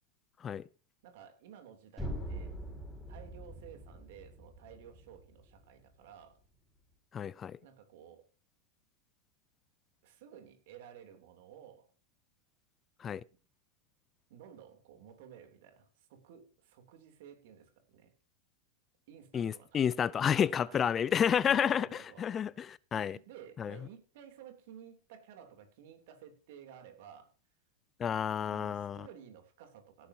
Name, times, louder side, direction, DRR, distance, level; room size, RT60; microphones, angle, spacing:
voice 1, 1.0-2.6 3.1-6.4 7.6-8.3 10.0-11.9 14.3-18.1 19.1-20.1 20.3-20.9 21.4-22.3 22.9-27.3 28.4-30.1, right 8 dB, 60° right, 3.2 m, -54 dB
sound 1, 2.0-5.9, equal, 5° left, 5.0 m, -43 dB
voice 2, 7.1-7.6 13.0-13.2 19.3-23.2 23.6-23.8 28.0-29.1, left 8 dB, 25° left, 0.4 m, -30 dB
16.5 x 10.0 x 2.9 m
hypercardioid pair, 105°, 0 cm